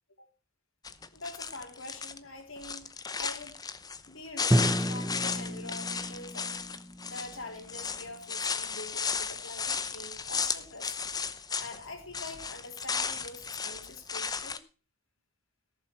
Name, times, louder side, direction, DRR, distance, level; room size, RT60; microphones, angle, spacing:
sound 1, 0.8-2.2 2.6-4.1 4.4-11.9 12.1-14.6, left 5 dB, 20° left, 0.7 m, -34 dB
voice 1, 1.1-2.9 3.2-3.6 4.1-6.6 7.0-11.1 11.6-14.6, left 2 dB, 70° left, 4 dB, 3.5 m, -44 dB
Drum, 4.5-8.3, right 1 dB, 10° right, 0.8 m, -32 dB
18.0 x 7.6 x 4.5 m, 0.35 s
head